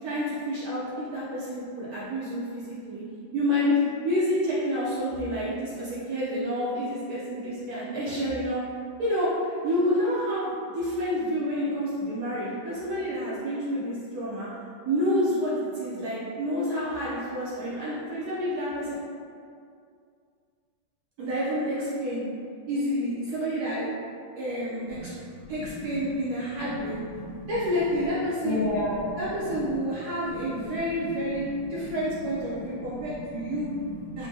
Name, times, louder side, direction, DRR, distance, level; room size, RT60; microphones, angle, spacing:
voice 1, 0.0-3.0 3.3-8.6 9.0-14.5 14.9-18.9 21.2-22.2 22.7-23.9 24.4-25.1 25.5-27.0 27.5-28.6 29.2-33.7 34.2-34.3, equal, 65° right, -8 dB, 1.0 m, -29 dB
voice 2, 25.4-26.2 26.6-26.7 27.2-27.5 28.4-29.2 29.5-29.6 31.4-31.7 32.2-32.3 32.5-34.3, left 1 dB, 75° left, -7 dB, 1.6 m, -34 dB
4.4 x 2.1 x 2.7 m, 2.3 s
omnidirectional pair, 2.1 m